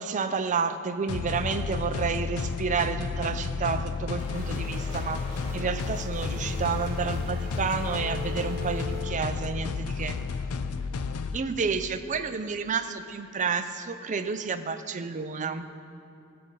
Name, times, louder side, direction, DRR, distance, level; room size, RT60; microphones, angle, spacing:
voice 1, 0.0-10.2 11.3-15.7, right 5 dB, 35° right, 8 dB, 0.5 m, -30 dB
sound 1, 1.1-11.4, left 5 dB, 85° left, 0.5 m, -32 dB
sound 2, 4.2-9.2, left 1 dB, 30° left, 2.3 m, -41 dB
16.0 x 7.6 x 3.9 m, 2.7 s
head